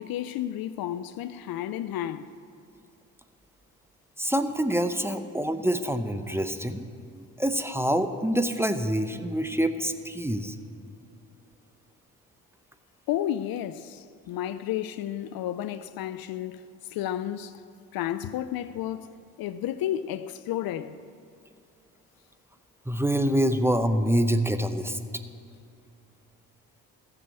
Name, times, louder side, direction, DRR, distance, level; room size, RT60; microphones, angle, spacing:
voice 1, 0.0-2.3 13.1-16.6 16.9-17.6 17.9-21.0, left 11 dB, 55° left, 0.5 m, -32 dB
voice 2, 4.2-10.6 22.9-25.0, equal, 5° right, 0.7 m, -26 dB
14.0 x 7.0 x 7.0 m
hypercardioid pair, 45°, 44 cm